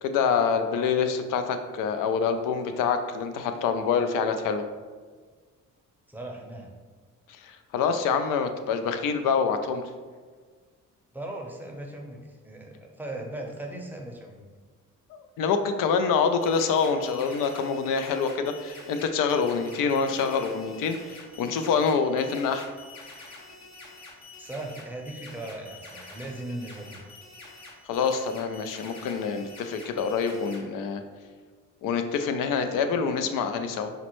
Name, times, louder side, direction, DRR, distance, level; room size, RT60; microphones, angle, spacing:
voice 1, 0.0-4.6 7.3-9.8 15.1-22.7 27.9-31.0 31.8-33.9, left 6 dB, 80° left, 7 dB, 0.5 m, -26 dB
voice 2, 6.1-6.8 11.1-14.5 24.4-27.0, right 1 dB, 5° right, 0 dB, 0.6 m, -38 dB
sound 1, 16.2-30.6, left 3 dB, 55° left, 0.9 m, -47 dB
5.0 x 2.1 x 3.0 m, 1.5 s
cardioid pair, 70°, 32 cm